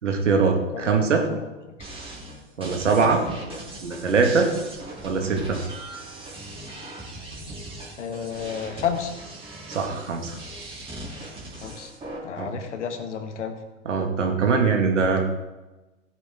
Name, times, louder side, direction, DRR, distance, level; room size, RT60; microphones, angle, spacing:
voice 1, 0.0-1.2 2.6-3.2 3.8-4.5 5.0-5.6 9.7-10.4 12.4-12.5 13.9-15.3, right 4 dB, 80° right, 3 dB, 2.0 m, -22 dB
voice 2, 0.7-1.7 8.0-9.1 11.6-11.9 12.2-13.6, left 7 dB, 75° left, 7 dB, 1.7 m, -31 dB
sound 1, 1.8-12.2, right 1 dB, 15° right, 3.1 m, -39 dB
16.0 x 8.3 x 3.7 m, 1.1 s
hypercardioid pair, 100°, 36 cm